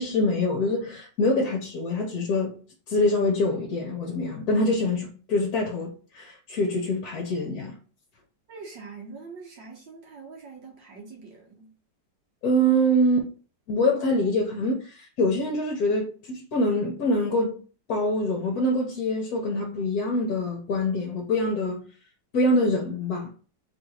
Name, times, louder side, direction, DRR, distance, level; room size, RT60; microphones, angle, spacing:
voice 1, 0.0-2.6 2.9-7.7 12.4-13.3 13.7-17.6 17.9-21.8 22.3-23.3, left 1 dB, 60° left, 1.3 m, -25 dB
voice 2, 8.5-11.7, right 4 dB, 75° right, 1.9 m, -43 dB
4.0 x 2.7 x 4.7 m
omnidirectional pair, 2.0 m